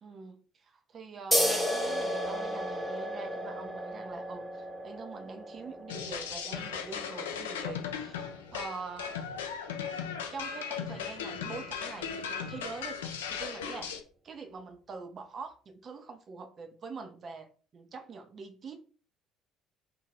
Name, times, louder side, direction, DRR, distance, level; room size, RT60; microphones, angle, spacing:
voice 1, 0.0-9.2 10.3-13.9 14.2-18.8, right 4 dB, 40° right, 6 dB, 0.5 m, -44 dB
sound 1, 1.3-8.4, equal, ahead, 0.8 m, -34 dB
sound 2, 5.9-14.0, left 7 dB, 75° left, 0.3 m, -37 dB
2.6 x 2.2 x 3.2 m, 0.41 s
figure-of-eight pair, 55°, 0 cm